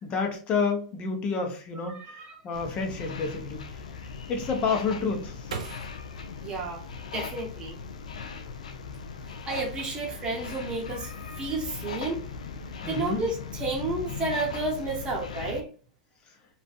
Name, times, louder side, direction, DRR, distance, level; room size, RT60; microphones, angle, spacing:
voice 1, 0.0-2.0 2.4-3.8 4.3-5.3 12.8-13.2, left 5 dB, 35° left, 0.7 m, -29 dB
voice 2, 1.8-2.4 6.4-6.8 7.1-7.8 9.5-11.1 11.4-12.2 12.9-15.7, right 3 dB, 25° right, 0.7 m, -31 dB
sound 1, 2.5-15.6, left 5 dB, 90° left, 0.4 m, -39 dB
sound 2, 4.5-7.6 8.1-8.8 9.2-9.6, right 5 dB, 85° right, 0.7 m, -42 dB
2.6 x 2.4 x 2.3 m
hypercardioid pair, 120°, 4 cm